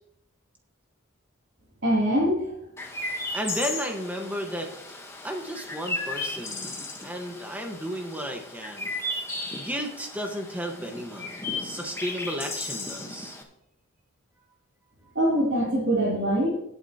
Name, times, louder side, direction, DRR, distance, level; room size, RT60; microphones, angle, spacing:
voice 1, 1.8-2.5 15.1-16.5, equal, 50° right, -6 dB, 3.1 m, -23 dB
Chirp tweet, 2.8-13.4, left 2 dB, 10° left, 1.1 m, -35 dB
voice 2, 3.3-4.7 5.2-6.7 7.0-8.9 9.5-11.3 11.6-13.4, equal, 5° right, 3 dB, 1.3 m, -33 dB
17.5 x 8.2 x 2.9 m, 0.76 s
head